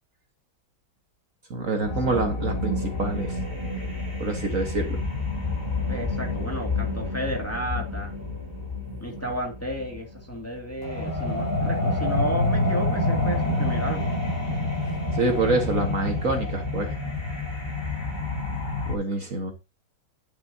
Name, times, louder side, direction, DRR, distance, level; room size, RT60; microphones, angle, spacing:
voice 1, 1.5-3.4 4.2-5.0 8.9-9.0 15.1-17.0 18.9-19.5, right 3 dB, 50° right, 4 dB, 1.8 m, -26 dB
sound 1, 1.8-19.0, left 2 dB, 30° left, 4.9 m, -28 dB
voice 2, 5.9-8.1 9.0-14.1, equal, 10° left, 0 dB, 2.3 m, -33 dB
10.5 x 10.0 x 2.8 m, 0.25 s
omnidirectional pair, 1.9 m